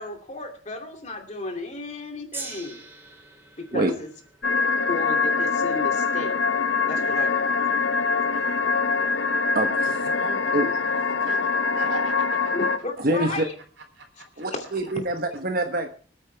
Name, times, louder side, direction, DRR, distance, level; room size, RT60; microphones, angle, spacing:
voice 1, 0.0-2.8 3.6-4.1 4.9-6.4 6.9-7.6 12.5-13.5 14.5-14.9, left 2 dB, 40° left, 4 dB, 2.7 m, -34 dB
Gong, 2.3-8.7 9.5-9.6, right 3 dB, 10° right, 2.6 m, -45 dB
sound 1, 4.4-12.8, left 4 dB, 85° left, 1.0 m, -24 dB
voice 2, 6.9-7.3 8.3-8.7 9.9-10.9 11.2-12.5 13.8-14.5, right 3 dB, 80° right, 5 dB, 3.4 m, -41 dB
voice 3, 9.5-9.9 10.5-10.7 13.0-13.5 14.4-15.9, right 1 dB, 50° right, 5 dB, 1.2 m, -25 dB
25.5 x 9.1 x 3.4 m, 0.43 s
head